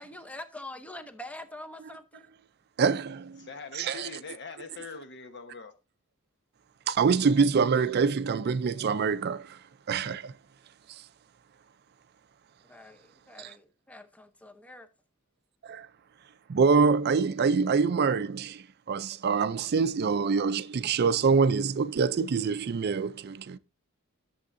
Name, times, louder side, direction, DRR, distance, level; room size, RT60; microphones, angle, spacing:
voice 1, 0.0-2.3 12.7-14.9, left 1 dB, 5° left, 0.7 m, -44 dB
voice 2, 2.8-3.5 3.7-4.1 6.9-9.6 9.9-10.3 13.4-13.5 15.6-15.9 16.5-23.6, right 5 dB, 50° right, 0.4 m, -25 dB
voice 3, 3.4-5.7, left 5 dB, 55° left, 1.1 m, -43 dB
11.0 x 7.0 x 2.6 m
head